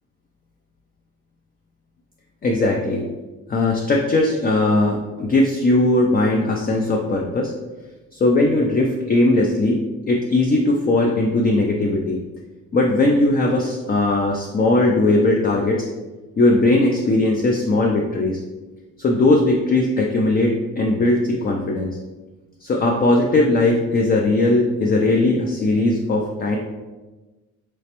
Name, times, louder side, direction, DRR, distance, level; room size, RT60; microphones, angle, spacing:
voice 1, 2.4-3.0 3.5-7.5 8.1-12.2 12.7-15.9 16.4-18.4 19.0-21.9 22.6-26.6, left 2 dB, 30° left, 0 dB, 0.4 m, -19 dB
3.3 x 3.1 x 2.9 m, 1.2 s
cardioid pair, 90°, 30 cm